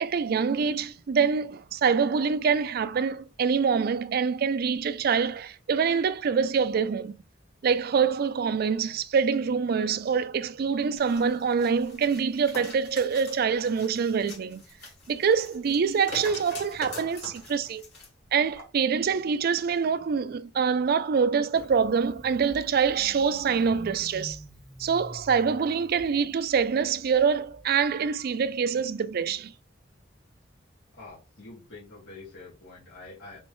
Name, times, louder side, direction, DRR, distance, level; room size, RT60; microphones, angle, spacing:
voice 1, 0.0-7.2 7.6-14.6 15.1-17.8 18.3-24.4 24.8-29.5, right 6 dB, 55° right, 0.4 m, -25 dB
sound 1, 11.0-18.1 18.5-18.6, left 3 dB, 65° left, 2.5 m, -44 dB
Engine starting, 21.5-28.0, equal, ahead, 1.0 m, -47 dB
voice 2, 30.9-33.4, left 3 dB, 85° left, 1.8 m, -46 dB
4.3 x 3.0 x 3.1 m
head